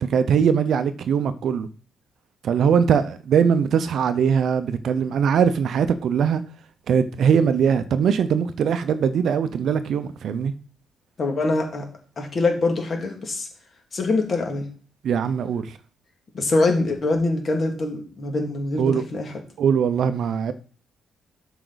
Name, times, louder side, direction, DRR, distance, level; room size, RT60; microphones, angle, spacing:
voice 1, 0.0-1.7 2.4-6.4 6.9-10.5 15.0-15.8 18.8-19.0 19.6-20.5, right 7 dB, 50° right, 0.6 m, -21 dB
voice 2, 11.2-11.9 12.2-13.5 13.9-14.7 16.3-19.3, left 2 dB, 35° left, 2.1 m, -24 dB
12.5 x 5.0 x 4.0 m
cardioid pair, 175°, 0 cm